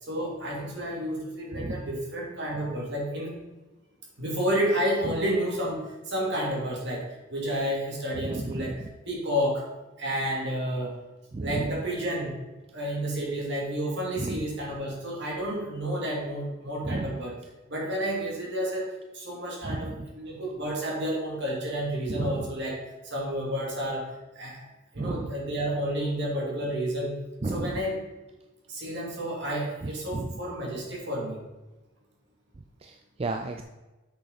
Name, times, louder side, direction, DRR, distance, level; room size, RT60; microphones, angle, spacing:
voice 1, 0.0-3.3 4.2-9.7 10.0-11.0 11.4-12.4 12.7-17.4 17.7-24.6 24.9-27.1 27.4-28.0 28.7-31.4, equal, 60° right, -3 dB, 2.8 m, -30 dB
voice 2, 8.2-8.8 11.3-11.7 14.2-14.5 16.8-17.2 19.6-19.9 22.1-22.4 25.0-25.3 27.4-27.8 30.1-30.3 32.8-33.6, right 2 dB, 30° right, 4 dB, 0.4 m, -32 dB
7.9 x 6.4 x 4.2 m, 1.1 s
head